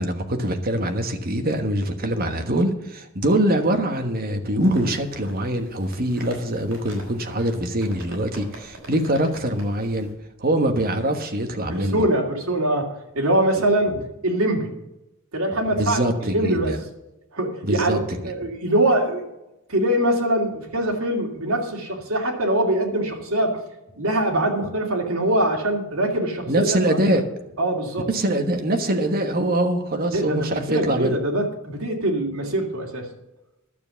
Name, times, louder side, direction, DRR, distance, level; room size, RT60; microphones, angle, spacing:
voice 1, 0.0-10.1 10.4-12.0 13.9-14.0 15.8-16.8 17.6-18.0 18.4-18.5 26.5-27.2 28.1-31.2, right 1 dB, 45° right, 1.4 m, -23 dB
sound 1, 4.6-10.1, right 1 dB, 70° right, 4.9 m, -44 dB
voice 2, 11.6-13.9 14.2-14.7 15.3-16.7 17.3-19.3 19.7-23.6 24.0-27.2 27.6-28.1 30.1-33.1, right 1 dB, 90° right, 2.5 m, -23 dB
11.5 x 7.3 x 7.0 m
head